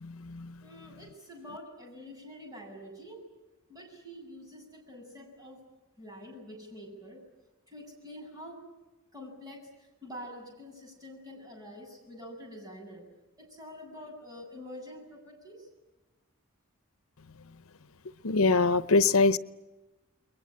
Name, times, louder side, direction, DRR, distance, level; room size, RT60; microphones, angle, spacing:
voice 1, 0.0-0.5 18.2-19.4, left 3 dB, 85° left, 0.8 m, -23 dB
voice 2, 0.6-3.2 3.7-5.6 6.0-7.2 7.7-8.6 9.1-9.6 10.0-13.0 13.4-15.6, equal, 20° right, 7.8 m, -46 dB
29.5 x 22.0 x 8.7 m
head